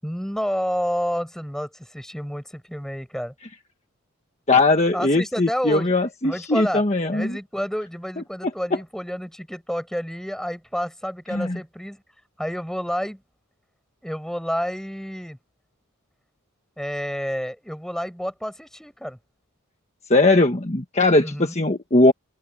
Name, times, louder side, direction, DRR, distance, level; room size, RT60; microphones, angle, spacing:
voice 1, 0.0-3.3 4.9-5.9 6.2-6.8 7.1-12.0 12.4-13.2 14.0-15.4 16.8-19.2 21.2-21.5, equal, ahead, 7.2 m, -29 dB
voice 2, 4.5-7.3 11.3-11.6 20.1-22.1, left 2 dB, 30° left, 1.4 m, -19 dB
open air
head